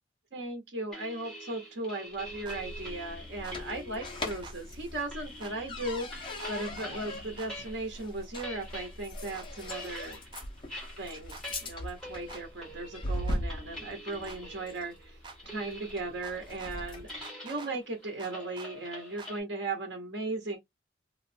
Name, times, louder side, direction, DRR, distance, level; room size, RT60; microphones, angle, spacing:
voice 1, 0.3-10.2 11.0-15.2 15.4-17.1 17.4-20.6, right 2 dB, 75° right, 1.0 m, -37 dB
sound 1, 0.9-8.0 8.2-19.4, left 1 dB, 5° left, 1.4 m, -46 dB
sound 2, 2.2-17.2, left 1 dB, 25° left, 0.8 m, -40 dB
sound 3, 2.5-2.6 3.4-3.6 4.4-4.6 5.4-5.5 6.4-6.9 7.4-7.5 8.4-8.5 9.3-9.5 10.3-10.5 11.3-11.5 12.3-12.4 13.3-13.4 14.3-14.4 15.2-15.4 16.2-16.7 17.2-17.7 18.2-18.7 19.2-19.3, right 4 dB, 25° right, 0.4 m, -47 dB
3.1 x 2.5 x 2.6 m
head